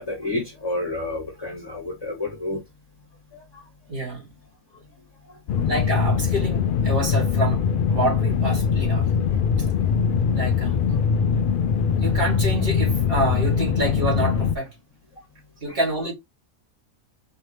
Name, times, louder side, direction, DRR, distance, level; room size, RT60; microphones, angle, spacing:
voice 1, 0.0-2.6 3.3-3.4 15.7-15.8, left 2 dB, 20° left, 1.1 m, -30 dB
voice 2, 3.9-4.3 5.7-7.6 7.9-9.1 10.3-10.8 12.0-14.7 15.6-16.1, right 1 dB, 40° right, 2.1 m, -27 dB
sound 1, 5.5-14.5, left 6 dB, 90° left, 0.4 m, -22 dB
4.7 x 3.3 x 2.9 m
omnidirectional pair, 1.5 m